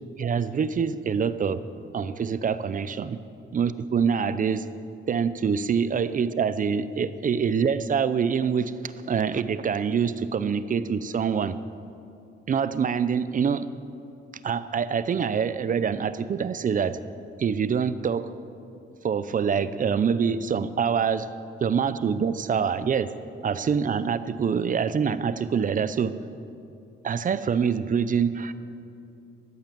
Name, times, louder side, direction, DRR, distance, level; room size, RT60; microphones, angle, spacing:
voice 1, 0.2-1.6 1.9-3.2 3.5-4.6 5.1-11.6 12.5-13.7 14.4-17.0 17.4-18.3 19.0-21.3 21.6-23.1 23.4-26.1 27.0-28.5, right 6 dB, 40° right, 14 dB, 0.7 m, -25 dB
14.0 x 12.0 x 7.7 m, 2.6 s
cardioid pair, 90°, 20 cm